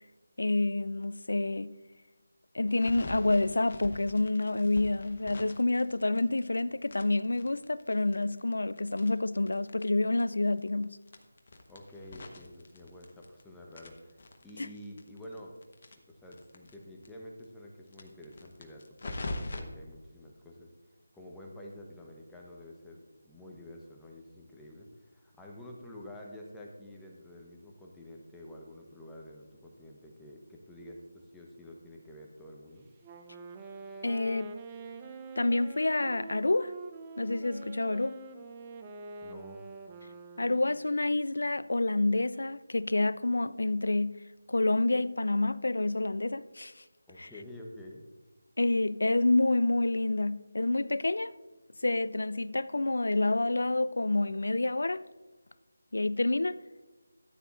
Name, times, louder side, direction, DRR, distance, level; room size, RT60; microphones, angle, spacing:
voice 1, 0.4-1.7 2.5-11.0 14.6-14.7 34.0-34.5 35.4-36.7 37.2-38.2 40.4-44.2 44.5-46.8 47.2-47.3 48.6-51.3 51.8-55.0 55.9-56.6, left 2 dB, 70° left, 0.3 m, -28 dB
sound 1, 2.7-6.6 6.9-9.9 10.2-10.3 10.5-10.6 11.0-13.4 13.7-16.7 17.0-17.1 17.4-17.5 17.9-19.6, left 2 dB, 45° left, 1.1 m, -43 dB
voice 2, 11.7-15.6 15.8-20.7 21.1-32.9 39.2-39.7 47.1-48.0, left 1 dB, 5° left, 0.9 m, -49 dB
Wind instrument woodwind instrument, 33.0-40.9, right 3 dB, 20° right, 0.6 m, -45 dB
13.5 x 9.3 x 2.5 m
figure-of-eight pair, 160°, 0 cm